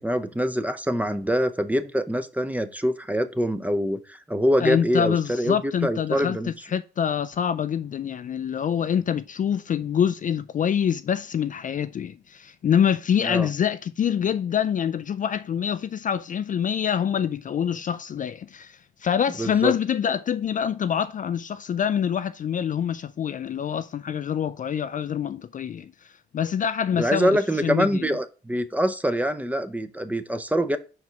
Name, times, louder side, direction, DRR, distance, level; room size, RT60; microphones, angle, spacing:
voice 1, 0.0-5.6 5.8-6.5 13.2-13.5 19.4-19.7 26.9-30.8, equal, 5° right, 0.7 m, -24 dB
voice 2, 4.6-6.4 6.7-25.9 26.3-28.1, left 8 dB, 40° left, 0.4 m, -25 dB
5.4 x 4.7 x 4.5 m
cardioid pair, 90°, 20 cm